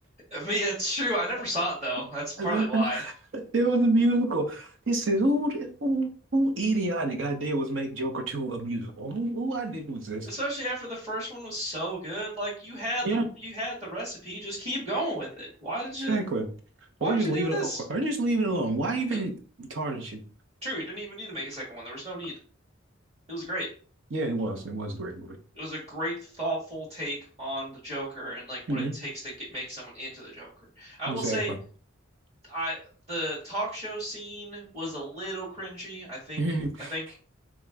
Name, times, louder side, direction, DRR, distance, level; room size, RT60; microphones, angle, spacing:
voice 1, 0.3-3.0 10.2-16.2 17.0-17.8 19.1-19.2 20.6-22.3 23.3-23.7 25.5-30.5 30.8-31.5 32.4-36.4 36.9-37.0, right 1 dB, 30° right, -6 dB, 1.7 m, -33 dB
voice 2, 2.4-10.3 13.0-13.3 16.1-16.5 17.0-19.3 19.6-20.2 24.1-25.4 28.7-29.0 31.1-31.6 36.4-36.9, right 2 dB, 70° right, 4 dB, 0.8 m, -28 dB
3.6 x 3.0 x 3.4 m, 0.41 s
head